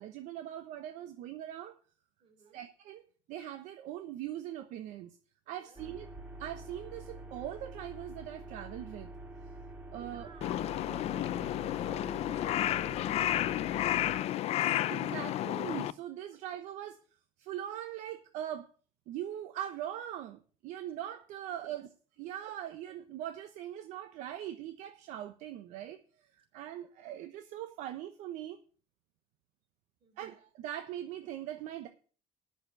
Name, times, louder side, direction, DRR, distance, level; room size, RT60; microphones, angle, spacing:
voice 1, 0.0-1.7 2.5-3.0 3.3-5.1 5.5-6.1 6.4-9.1 9.9-10.3 14.9-17.0 17.4-18.7 19.1-21.9 22.2-26.0 26.4-28.6 30.2-31.9, right 11 dB, 70° right, 8 dB, 1.0 m, -41 dB
voice 2, 2.2-2.7 5.5-6.0 9.8-15.1 16.3-16.4 21.4-21.5 30.0-30.4, right 5 dB, 45° right, 4 dB, 4.4 m, -59 dB
sound 1, 5.8-14.2, right 2 dB, 10° right, 2.5 m, -47 dB
Crow, 10.4-15.9, left 13 dB, 55° left, 0.6 m, -31 dB
9.3 x 6.8 x 8.1 m, 0.41 s
supercardioid pair, 105°, 13 cm